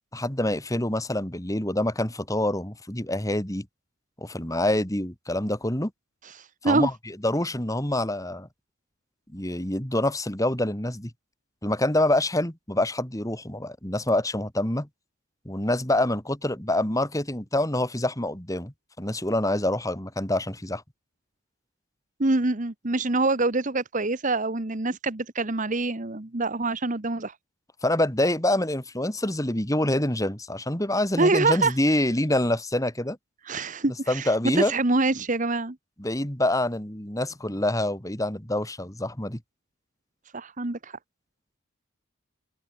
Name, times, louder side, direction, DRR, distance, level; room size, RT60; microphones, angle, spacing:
voice 1, 0.1-3.7 4.2-5.9 6.6-8.5 9.3-11.1 11.6-14.9 15.4-20.8 27.8-33.2 34.1-34.7 36.0-39.4, left 1 dB, 15° left, 2.9 m, -26 dB
voice 2, 22.2-27.3 31.2-31.7 33.5-34.3 34.5-35.8 40.3-40.9, right 3 dB, 35° right, 1.2 m, -25 dB
head